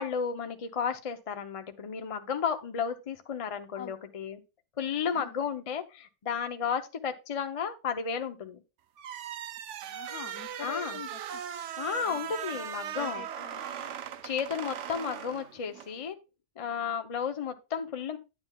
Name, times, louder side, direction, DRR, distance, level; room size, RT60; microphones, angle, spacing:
voice 1, 0.0-4.4 4.8-8.6 10.6-11.0 11.8-13.2 14.2-16.2 16.6-18.2, left 7 dB, 50° left, 7 dB, 0.4 m, -33 dB
sound 1, 9.0-15.9, right 9 dB, 65° right, 0.8 m, -39 dB
voice 2, 9.8-11.4 12.0-12.3 13.0-13.9, left 8 dB, 75° left, 9 dB, 1.3 m, -45 dB
10.5 x 9.0 x 2.3 m, 0.28 s
omnidirectional pair, 1.6 m